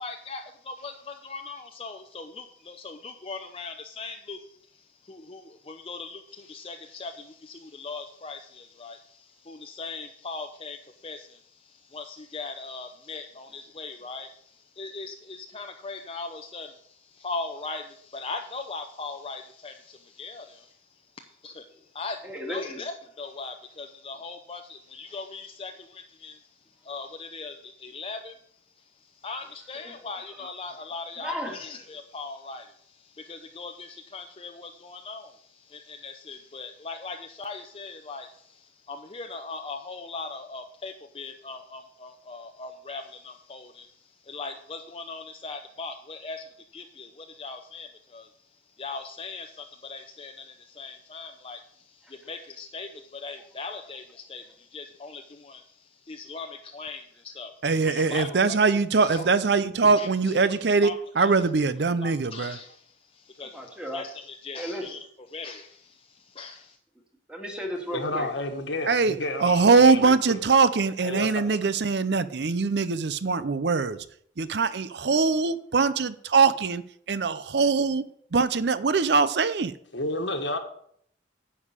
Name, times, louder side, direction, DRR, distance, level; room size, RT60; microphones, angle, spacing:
voice 1, 0.0-4.4 5.1-9.0 9.5-10.8 11.0-11.3 11.9-14.3 14.8-16.7 17.2-17.8 18.1-19.7 20.2-20.6 21.4-21.6 22.0-22.2 22.5-26.3 26.9-28.3 29.2-32.6 33.3-35.3 35.7-38.3 38.9-43.9 44.3-46.4 46.7-47.1 47.4-47.9 48.1-48.3 48.8-50.3 50.8-51.6 52.3-54.0 54.3-54.4 54.7-55.6 56.1-56.5 56.7-57.0 57.4-57.5 57.9-58.3 59.1-59.2 60.0-60.1 60.8-61.3 62.0-62.7 63.4-63.5 63.9-64.0 64.4-65.0 65.3-65.7 66.4-66.7, left 3 dB, 30° left, 4 dB, 0.6 m, -39 dB
voice 2, 22.2-22.8 29.4-30.0 30.2-30.7 31.2-31.6 53.4-53.5 53.8-53.9 59.2-59.3 63.4-64.0 64.6-64.9 67.3-68.3 71.0-71.2, equal, 5° right, 1 dB, 2.0 m, -36 dB
voice 3, 57.6-62.6 68.9-74.0 74.4-76.8 77.1-78.1 78.3-79.7, right 4 dB, 60° right, 14 dB, 0.6 m, -22 dB
voice 4, 67.9-70.4 71.0-71.4 79.9-80.6, left 2 dB, 75° left, 5 dB, 1.6 m, -31 dB
9.8 x 5.5 x 8.2 m, 0.65 s
head